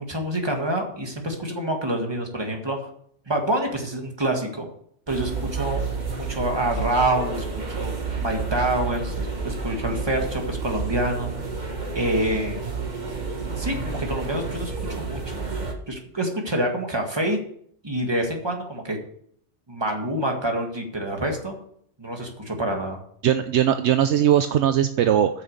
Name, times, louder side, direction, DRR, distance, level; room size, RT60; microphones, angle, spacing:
voice 1, 0.0-2.9 3.3-4.7 5.1-5.9 6.2-7.4 7.8-7.9 8.2-11.3 11.6-12.7 13.6-15.3 15.9-17.4 17.8-19.0 19.7-21.6 22.0-23.0, right 1 dB, 20° right, 2 dB, 1.8 m, -27 dB
sound 1, 5.1-15.7, right 4 dB, 40° right, 1.6 m, -30 dB
voice 2, 23.2-25.4, right 10 dB, 70° right, 9 dB, 0.9 m, -20 dB
8.9 x 6.2 x 6.7 m, 0.65 s
omnidirectional pair, 1.2 m